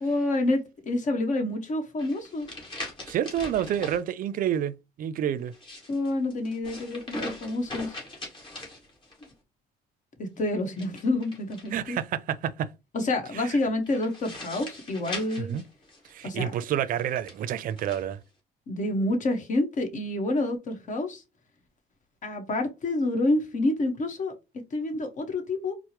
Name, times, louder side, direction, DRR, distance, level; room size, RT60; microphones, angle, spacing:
voice 1, 0.0-2.5 5.9-8.0 10.2-12.0 12.9-15.5 16.2-16.5 18.7-21.2 22.2-24.3 24.7-25.7, left 2 dB, 45° left, 1.1 m, -28 dB
sound 1, 2.0-4.0 5.4-9.3 10.7-12.0 13.9-16.3 17.0-18.0, left 1 dB, 30° left, 1.8 m, -41 dB
voice 2, 3.1-5.5 11.7-12.1 12.4-12.5 15.4-15.6 16.1-18.2, right 10 dB, 55° right, 0.5 m, -28 dB
4.4 x 2.1 x 2.9 m
cardioid pair, 110°, 17 cm